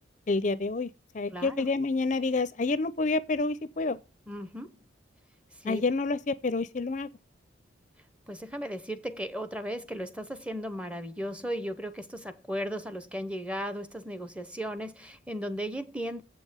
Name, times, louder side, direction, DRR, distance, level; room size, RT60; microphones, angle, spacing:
voice 1, 0.3-0.9 1.1-4.0 5.6-7.1, left 3 dB, 40° left, 0.5 m, -28 dB
voice 2, 1.3-1.7 4.3-4.8 5.5-5.9 8.3-16.2, equal, 5° right, 0.7 m, -36 dB
7.7 x 5.5 x 7.2 m
head